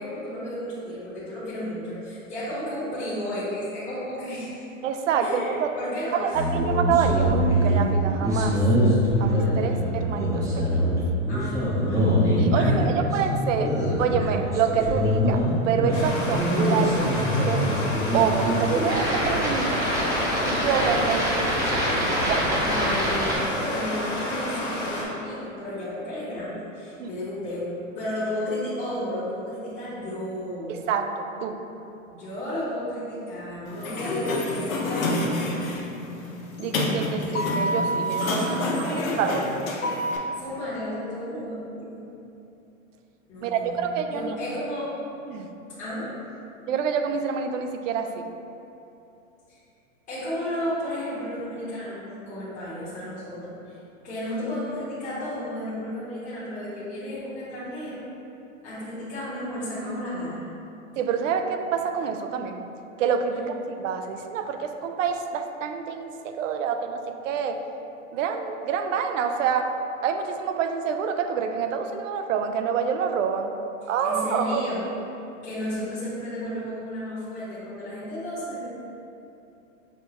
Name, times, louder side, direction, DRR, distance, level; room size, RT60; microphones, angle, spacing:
voice 1, 0.0-4.7 5.2-6.4 11.3-13.2 22.5-30.8 32.1-35.2 38.3-42.0 43.3-43.8 44.1-44.9 45.8-46.1 49.5-49.6 50.1-53.8 54.0-58.0 58.6-60.5 63.3-63.5 74.0-74.8 75.4-78.7, left 1 dB, 20° left, -12 dB, 1.1 m, -33 dB
voice 2, 4.8-5.7 6.1-8.6 9.2-10.9 12.4-13.7 14.0-17.8 18.1-19.9 20.4-22.6 27.0-27.1 30.7-31.6 36.6-38.5 38.9-39.4 43.4-44.3 45.3-45.5 46.7-48.3 61.0-62.6 63.0-67.6 68.1-69.7 70.0-73.5 73.9-74.7, right 7 dB, 70° right, 6 dB, 0.5 m, -27 dB
sound 1, 6.3-23.3, equal, 10° right, 0.7 m, -24 dB
Stream, 15.9-25.0, left 1 dB, 40° left, 1.1 m, -30 dB
Sliding door, 33.7-40.2, left 1 dB, 80° left, 0.7 m, -27 dB
6.5 x 2.2 x 2.9 m, 2.8 s
hypercardioid pair, 125°, 40 cm